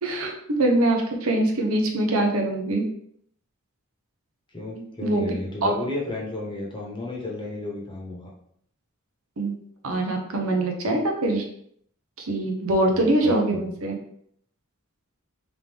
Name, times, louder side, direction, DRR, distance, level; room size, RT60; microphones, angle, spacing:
voice 1, 0.0-2.9 5.0-5.3 5.6-5.7 9.4-9.6 9.8-11.4 12.2-13.9, right 2 dB, 75° right, 2 dB, 0.8 m, -23 dB
voice 2, 4.5-8.3 12.9-13.7, left 2 dB, 25° left, -3 dB, 1.1 m, -32 dB
3.7 x 3.5 x 3.3 m, 0.68 s
head